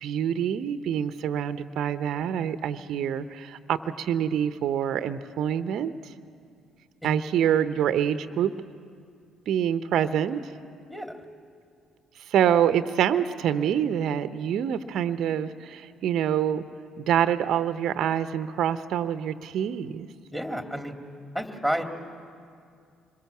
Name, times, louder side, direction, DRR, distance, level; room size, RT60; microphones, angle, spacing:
voice 1, 0.0-5.9 7.0-8.5 9.5-10.4 12.3-16.6 17.0-20.1, right 9 dB, 60° right, 12 dB, 0.8 m, -26 dB
voice 2, 20.3-20.9 21.3-21.8, equal, 5° left, 4 dB, 3.0 m, -30 dB
26.0 x 22.0 x 7.3 m, 2.3 s
hypercardioid pair, 50°, 0 cm